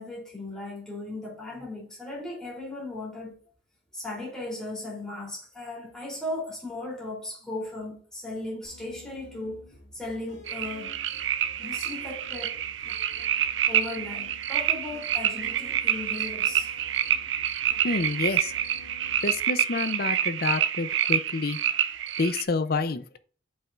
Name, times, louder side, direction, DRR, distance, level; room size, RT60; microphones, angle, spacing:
voice 1, 0.0-3.3 3.9-9.6 9.9-10.9 11.6-12.6 13.7-16.7, left 2 dB, 5° left, 3.3 m, -37 dB
sound 1, 8.6-19.4, left 1 dB, 80° left, 1.9 m, -50 dB
sound 2, 10.5-22.4, right 10 dB, 90° right, 0.5 m, -27 dB
voice 2, 17.8-18.6 19.2-21.6 22.2-23.0, left 3 dB, 55° left, 0.6 m, -28 dB
7.5 x 5.6 x 2.5 m
head